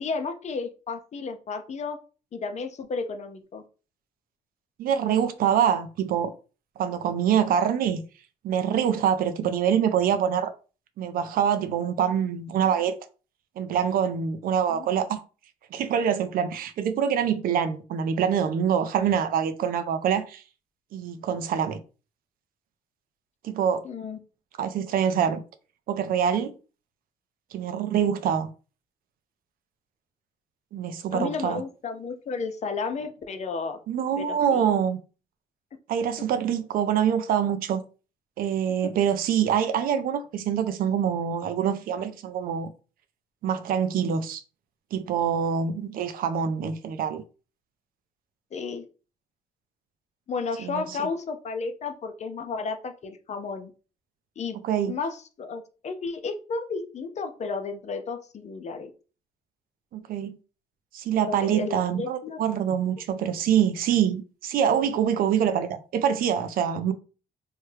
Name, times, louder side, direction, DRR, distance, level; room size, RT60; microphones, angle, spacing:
voice 1, 0.0-2.0 2.3-3.6 14.7-14.9 23.8-24.2 31.1-33.8 34.2-34.7 48.5-48.9 50.3-53.7 54.4-54.6 54.9-58.9 61.3-62.4, left 4 dB, 45° left, 0.6 m, -33 dB
voice 2, 4.8-6.3 6.8-8.0 8.4-10.5 11.0-13.0 13.6-15.2 15.7-20.4 20.9-21.8 23.4-23.8 24.6-25.4 25.9-26.5 27.5-28.5 30.7-31.6 33.9-35.0 35.9-37.8 38.4-42.7 43.4-44.4 44.9-47.2 50.6-51.0 54.6-54.9 59.9-60.3 60.9-66.9, right 8 dB, 70° right, 0.5 m, -25 dB
3.1 x 2.2 x 3.2 m
supercardioid pair, 65°, 15 cm